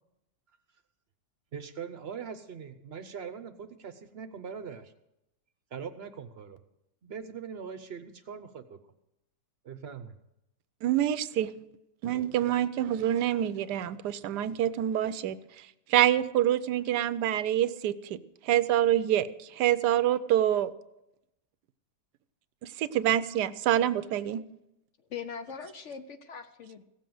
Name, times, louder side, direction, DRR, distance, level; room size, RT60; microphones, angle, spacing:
voice 1, 1.5-4.9 5.7-6.6 7.0-8.8 9.6-10.2, right 6 dB, 50° right, 11 dB, 0.8 m, -41 dB
voice 2, 10.8-11.5 12.0-20.7 22.6-24.4, right 11 dB, 90° right, 15 dB, 1.2 m, -26 dB
voice 3, 25.1-26.8, left 6 dB, 60° left, 9 dB, 0.9 m, -41 dB
16.5 x 7.3 x 7.7 m, 0.88 s
omnidirectional pair, 1.7 m